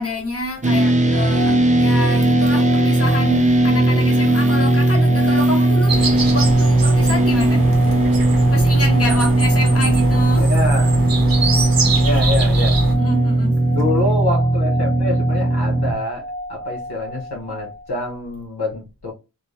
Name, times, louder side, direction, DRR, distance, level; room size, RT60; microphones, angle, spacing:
voice 1, 0.0-7.7 8.5-10.5 12.9-13.6, left 1 dB, 40° left, 1.0 m, -28 dB
sound 1, 0.6-15.9, right 1 dB, 20° right, 0.4 m, -17 dB
sound 2, 1.1-18.2, equal, 20° left, 0.8 m, -33 dB
sound 3, 5.9-12.9, right 2 dB, 65° right, 0.7 m, -24 dB
voice 2, 10.4-11.0 12.0-12.8 13.7-19.1, left 2 dB, 80° left, 0.7 m, -26 dB
3.1 x 2.0 x 2.4 m
wide cardioid pair, 50°, 38 cm